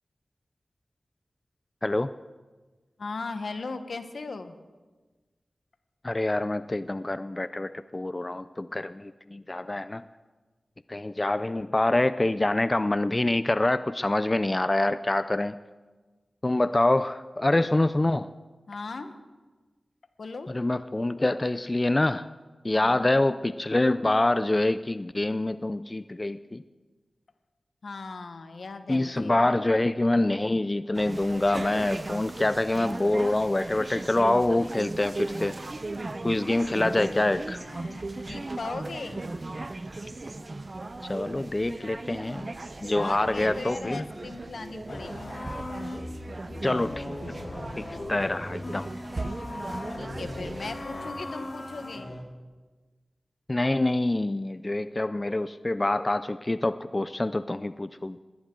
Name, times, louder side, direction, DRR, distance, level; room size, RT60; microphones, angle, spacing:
voice 1, 3.0-4.6 18.7-19.1 20.2-20.5 22.7-23.1 27.8-29.5 36.8-36.9 37.6-39.3 43.0-45.3 50.0-52.1, left 3 dB, 75° left, 8 dB, 1.2 m, -38 dB
voice 2, 6.0-10.0 10.9-15.6 16.4-18.3 20.5-22.3 22.6-26.6 28.9-35.5 36.2-37.6 41.0-42.5 42.8-44.0 46.6-47.0 47.8-48.9 53.5-58.2, left 2 dB, 30° left, 13 dB, 0.4 m, -26 dB
sound 1, 30.9-50.8, right 2 dB, 45° right, 0.8 m, -37 dB
sound 2, 44.9-52.2, left 1 dB, 55° left, 3.4 m, -38 dB
20.5 x 17.0 x 3.9 m, 1.3 s
cardioid pair, 50°, 0 cm